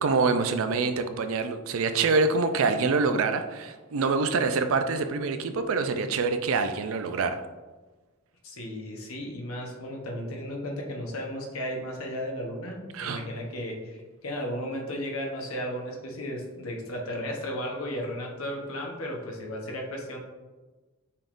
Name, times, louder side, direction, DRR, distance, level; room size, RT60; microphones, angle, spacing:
voice 1, 0.0-7.4 12.9-13.2, right 4 dB, 75° right, 8 dB, 0.4 m, -25 dB
voice 2, 8.4-20.2, equal, 85° left, 0 dB, 1.0 m, -34 dB
5.6 x 3.5 x 2.5 m, 1.3 s
head